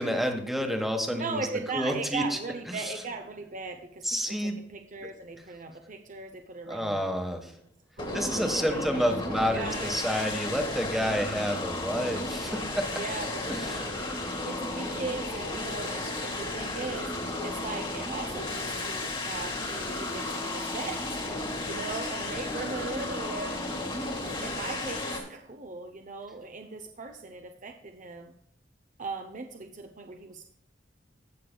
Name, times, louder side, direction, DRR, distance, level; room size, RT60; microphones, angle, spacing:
voice 1, 0.0-1.4 1.7-2.4 2.7-2.8 4.0-4.6 6.7-7.5 8.1-13.0 13.5-13.7, equal, ahead, 4 dB, 1.4 m, -29 dB
voice 2, 1.1-7.1 8.0-10.0 13.0-14.0 14.4-17.2 17.4-21.2 21.6-23.6 24.4-28.3 29.0-30.4, right 3 dB, 45° right, 5 dB, 0.7 m, -38 dB
sound 1, 8.0-25.2, left 2 dB, 25° left, 2.0 m, -34 dB
17.0 x 6.6 x 2.3 m, 0.73 s
head